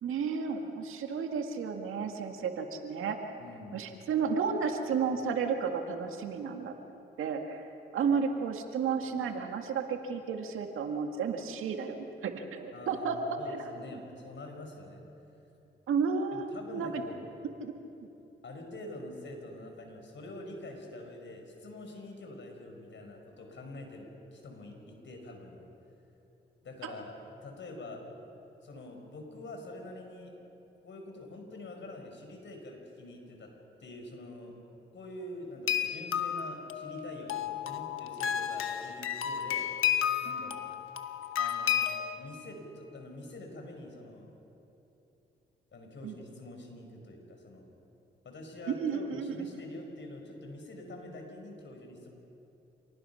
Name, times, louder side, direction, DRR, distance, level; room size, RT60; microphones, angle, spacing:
voice 1, 0.0-3.2 3.7-6.7 7.2-7.7 7.9-13.2 13.5-14.0 15.9-17.0 17.6-17.7 18.0-18.1 26.8-26.9 46.0-46.2 48.7-49.5, right 6 dB, 90° right, 4 dB, 1.8 m, -32 dB
voice 2, 3.4-3.8 12.7-15.0 16.3-17.3 18.4-25.6 26.6-28.1 28.6-30.3 30.8-34.6 34.9-39.7 40.2-40.6 41.3-41.9 42.1-44.3 45.7-47.7 48.2-52.1, left 1 dB, 65° left, 2 dB, 5.1 m, -45 dB
sound 1, 35.7-42.1, left 10 dB, 80° left, 1.2 m, -32 dB
27.5 x 19.5 x 5.7 m, 3.0 s
cardioid pair, 60°, 21 cm